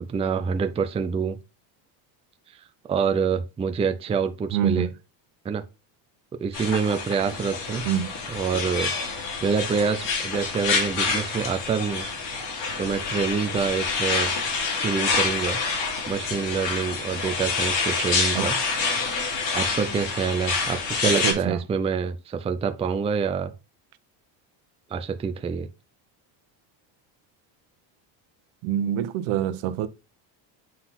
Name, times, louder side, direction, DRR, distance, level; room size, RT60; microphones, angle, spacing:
voice 1, 0.1-1.4 2.9-4.9 5.4-5.6 6.4-7.8 8.3-8.9 9.4-12.1 12.8-14.3 14.7-15.6 16.1-18.6 19.5-23.5 24.9-25.7, right 6 dB, 15° right, 0.4 m, -26 dB
voice 2, 4.5-4.9 7.8-8.1 18.3-18.5 21.0-21.6 28.6-29.9, right 10 dB, 75° right, 0.8 m, -26 dB
sound 1, 6.5-21.3, left 4 dB, 60° left, 2.9 m, -27 dB
7.7 x 4.0 x 4.1 m
cardioid pair, 140°, 48 cm